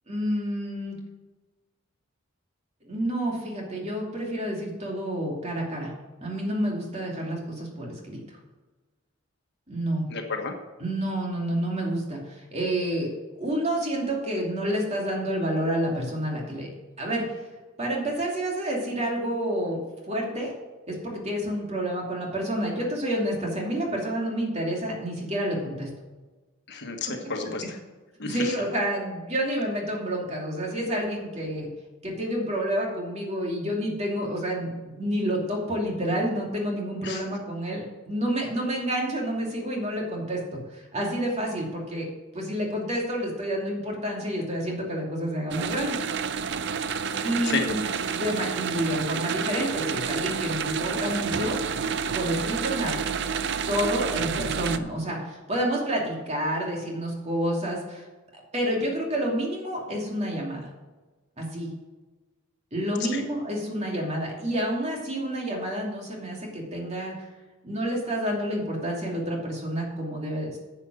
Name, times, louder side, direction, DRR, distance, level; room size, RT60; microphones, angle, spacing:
voice 1, 0.1-1.0 2.8-5.9 6.2-8.4 9.7-10.1 10.8-13.1 13.4-16.7 17.0-17.4 17.8-19.8 20.1-20.5 20.9-25.9 28.2-31.7 32.0-42.1 42.3-46.0 47.2-51.6 52.1-53.0 53.7-58.1 58.3-60.6 61.4-61.7 62.7-67.3 67.6-70.6, right 1 dB, 35° right, -1 dB, 2.8 m, -29 dB
voice 2, 10.1-10.6 26.7-27.8 28.2-28.5 37.0-37.2 47.4-47.6 63.1-63.2, left 4 dB, 60° left, 4 dB, 1.4 m, -31 dB
sound 1, 45.5-54.8, right 6 dB, 60° right, 0.5 m, -29 dB
9.9 x 7.5 x 6.2 m, 1.2 s
head